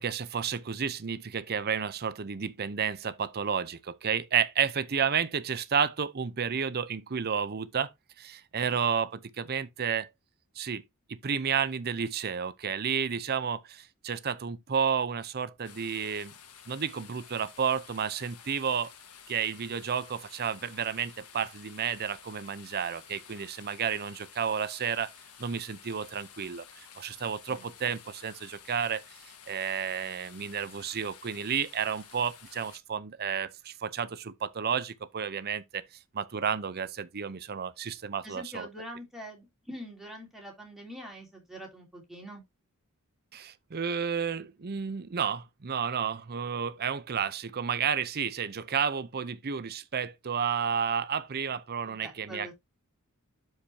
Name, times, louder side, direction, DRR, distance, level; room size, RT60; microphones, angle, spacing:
voice 1, 0.0-7.9 8.2-10.1 10.6-10.8 11.1-16.3 16.7-18.9 19.3-25.1 25.4-29.0 29.5-35.8 36.1-38.7 43.3-52.5, right 7 dB, 45° right, 0.6 m, -31 dB
sound 1, 15.6-32.8, left 8 dB, 85° left, 1.5 m, -52 dB
voice 2, 38.2-42.4 51.9-52.5, equal, ahead, 3.0 m, -44 dB
11.5 x 4.9 x 2.7 m
head